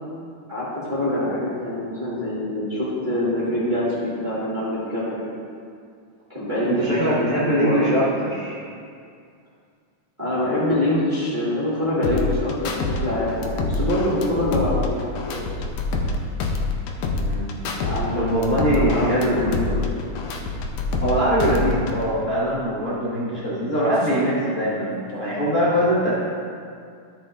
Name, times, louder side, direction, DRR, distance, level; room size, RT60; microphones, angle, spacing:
voice 1, 0.5-5.2 6.3-7.9 10.2-15.4 17.7-19.8, left 1 dB, 15° right, -10 dB, 2.0 m, -25 dB
voice 2, 6.6-8.6 17.1-17.8 18.1-19.6 21.0-26.1, equal, 35° left, -11 dB, 1.6 m, -22 dB
sound 1, 12.0-13.0 13.3-16.1 16.4-18.0 18.3-21.1 21.4-22.0, left 3 dB, 80° left, 1.5 m, -26 dB
13.0 x 7.6 x 2.5 m, 2.3 s
omnidirectional pair, 3.7 m